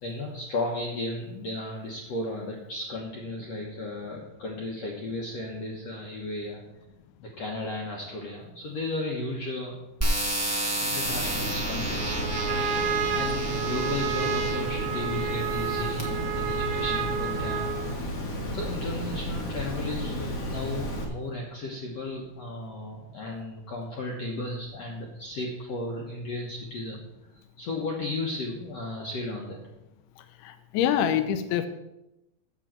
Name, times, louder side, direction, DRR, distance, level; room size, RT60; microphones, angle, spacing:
voice 1, 0.0-6.6 7.2-9.8 10.8-12.6 13.1-18.1 18.5-27.0 27.6-29.6, left 2 dB, 65° left, -1 dB, 1.7 m, -34 dB
sound 1, 10.0-14.7 15.4-16.0, right 1 dB, 15° right, 0.5 m, -31 dB
Water, 11.0-21.0, equal, 45° left, 1.0 m, -33 dB
Trumpet, 12.0-18.0, right 7 dB, 75° right, 2.8 m, -30 dB
voice 2, 30.4-31.7, left 9 dB, 80° left, 9 dB, 2.7 m, -25 dB
7.6 x 7.1 x 7.5 m, 0.92 s
omnidirectional pair, 4.6 m